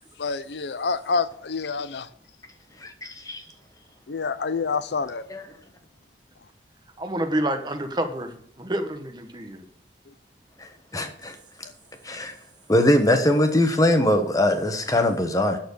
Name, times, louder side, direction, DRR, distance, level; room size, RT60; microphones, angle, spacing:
voice 1, 0.2-2.1 4.1-5.2, left 4 dB, 75° left, 0.6 m, -27 dB
voice 2, 2.8-3.4 5.3-5.5 10.6-11.3 12.0-12.3 12.7-15.6, left 1 dB, 20° left, 1.2 m, -22 dB
voice 3, 7.0-9.6, right 1 dB, 25° right, 1.1 m, -28 dB
12.5 x 4.3 x 8.4 m
head